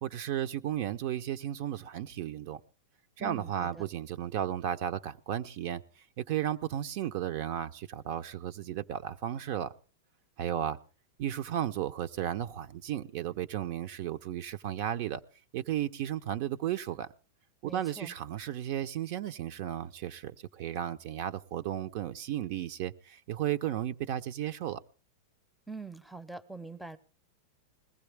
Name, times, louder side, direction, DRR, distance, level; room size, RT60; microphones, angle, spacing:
voice 1, 0.0-2.6 3.2-5.8 6.2-9.7 10.4-10.8 11.2-15.2 15.5-17.1 17.6-24.8, right 11 dB, 55° right, 9 dB, 0.7 m, -34 dB
voice 2, 3.2-3.8 17.6-18.1 25.7-27.0, right 3 dB, ahead, 17 dB, 0.7 m, -44 dB
20.5 x 15.0 x 3.5 m, 0.37 s
hypercardioid pair, 125°, 0 cm